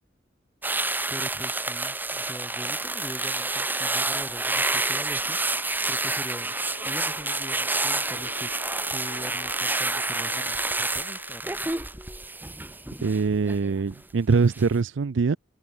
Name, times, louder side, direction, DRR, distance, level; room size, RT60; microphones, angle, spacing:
sound 1, 0.6-14.0 14.3-14.6, right 2 dB, 10° right, 1.8 m, -29 dB
voice 1, 1.1-5.4 5.9-6.5 6.8-8.5 8.9-11.7, equal, 10° left, 4.4 m, -42 dB
sound 2, 5.1-12.1, left 3 dB, 85° left, 7.7 m, -46 dB
voice 2, 13.0-15.4, right 4 dB, 90° right, 0.5 m, -23 dB
head